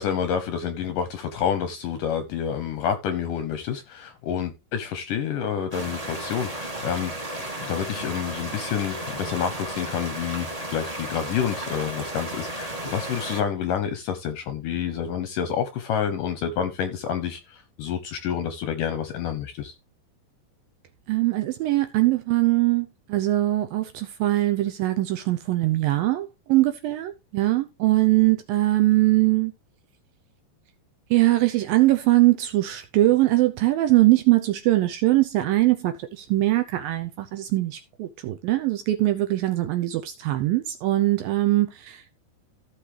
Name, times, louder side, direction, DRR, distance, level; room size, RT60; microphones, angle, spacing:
voice 1, 0.0-7.3 7.6-19.7, left 8 dB, 75° left, 2.0 m, -28 dB
sound 1, 5.7-13.4, right 1 dB, 25° right, 0.7 m, -34 dB
voice 2, 21.1-29.5 31.1-42.1, right 17 dB, 75° right, 2.2 m, -22 dB
15.5 x 5.8 x 3.3 m
omnidirectional pair, 4.8 m